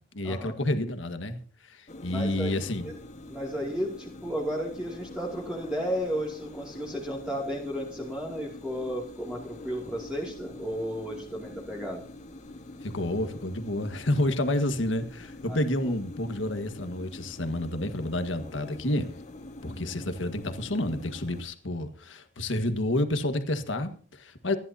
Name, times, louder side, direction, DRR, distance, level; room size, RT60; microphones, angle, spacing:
voice 1, 0.1-1.4 1.7-2.9 12.8-19.1 19.6-24.6, left 1 dB, 85° left, 1.7 m, -29 dB
sound 1, 1.9-21.4, left 2 dB, 40° left, 1.5 m, -45 dB
voice 2, 2.1-2.5 2.8-3.0 3.3-12.0 15.5-15.6 19.6-19.9, equal, 5° right, 2.6 m, -33 dB
26.5 x 11.0 x 2.8 m
head